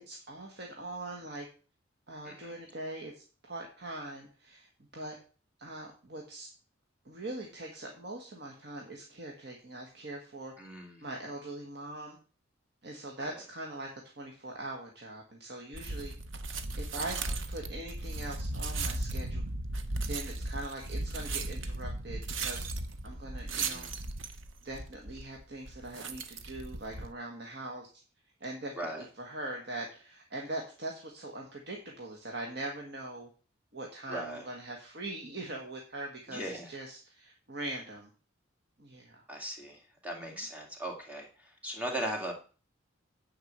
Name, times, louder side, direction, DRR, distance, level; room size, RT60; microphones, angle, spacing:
voice 1, 0.0-1.5 2.1-5.2 5.6-6.5 7.1-10.5 11.0-12.2 12.8-13.9 14.2-16.1 16.8-17.2 17.5-19.4 20.1-22.7 23.0-23.9 24.6-27.9 28.4-33.3 33.7-38.1 38.8-39.3, right 2 dB, 55° right, 0 dB, 1.6 m, -42 dB
voice 2, 10.6-11.0 13.2-13.3 17.0-17.1 23.5-23.9 28.8-29.0 34.1-34.4 36.3-36.7 39.3-42.3, right 1 dB, 5° right, 0 dB, 2.3 m, -39 dB
sound 1, 15.7-27.1, right 2 dB, 75° right, 0.9 m, -36 dB
9.5 x 4.8 x 7.4 m, 0.37 s
head